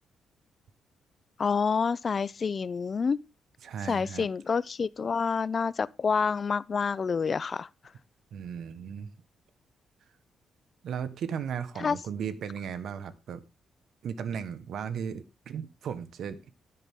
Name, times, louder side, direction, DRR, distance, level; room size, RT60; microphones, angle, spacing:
voice 1, 1.4-3.2 3.9-7.7 11.8-12.0, left 5 dB, 40° left, 0.6 m, -28 dB
voice 2, 3.6-4.3 8.3-9.1 10.8-13.4 14.0-16.4, right 7 dB, 70° right, 1.4 m, -36 dB
12.0 x 10.5 x 3.7 m
cardioid pair, 115°, 0 cm